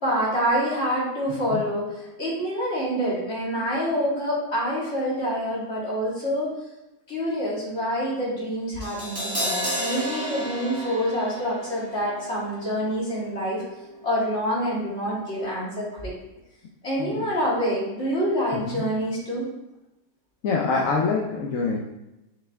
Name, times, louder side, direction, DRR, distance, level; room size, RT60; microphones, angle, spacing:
voice 1, 0.0-6.5 7.1-13.6 14.0-16.1 16.8-19.4, equal, 40° left, -7 dB, 2.4 m, -26 dB
Crash cymbal, 8.8-15.0 15.2-15.4, equal, 15° right, 2.1 m, -34 dB
voice 2, 18.5-18.8 20.4-21.8, left 4 dB, 60° left, -2 dB, 1.0 m, -25 dB
6.7 x 4.4 x 3.5 m, 0.97 s
omnidirectional pair, 1.7 m